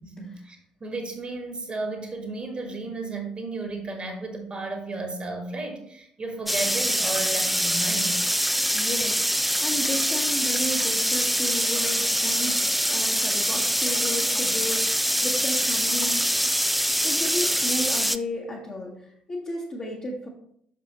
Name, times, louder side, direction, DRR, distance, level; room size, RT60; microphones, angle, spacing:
voice 1, 0.0-8.2, right 3 dB, 30° right, 4 dB, 1.4 m, -34 dB
sound 1, 6.5-18.2, equal, ahead, 0.3 m, -24 dB
voice 2, 8.7-12.6 12.9-16.5 17.0-20.3, left 1 dB, 35° left, -4 dB, 1.4 m, -34 dB
6.4 x 6.2 x 2.9 m, 0.67 s
figure-of-eight pair, 45°, 3 cm